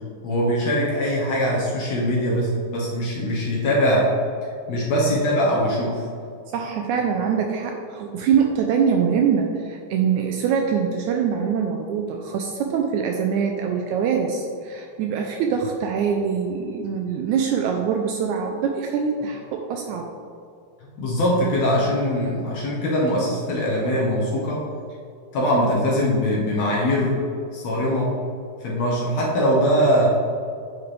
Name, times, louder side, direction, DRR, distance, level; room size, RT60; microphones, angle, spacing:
voice 1, 0.2-4.2 4.4-6.0 21.0-24.6 25.3-27.2 27.5-28.2 28.6-30.1, equal, 70° left, -4 dB, 1.8 m, -22 dB
voice 2, 6.5-20.1, right 6 dB, 80° right, 2 dB, 1.8 m, -23 dB
8.6 x 4.7 x 3.2 m, 2.4 s
omnidirectional pair, 3.8 m